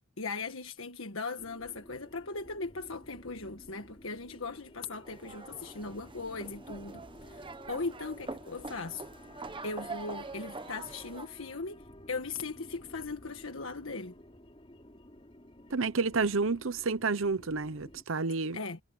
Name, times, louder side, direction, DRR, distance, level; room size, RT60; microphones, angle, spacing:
voice 1, 0.2-9.0 9.6-14.1 18.5-18.8, left 3 dB, 75° left, 1.6 m, -39 dB
sound 1, 1.4-18.0, left 1 dB, 25° left, 3.0 m, -53 dB
sound 2, 5.1-11.3, right 3 dB, 25° right, 1.1 m, -44 dB
voice 2, 15.7-18.6, right 4 dB, 70° right, 0.9 m, -30 dB
head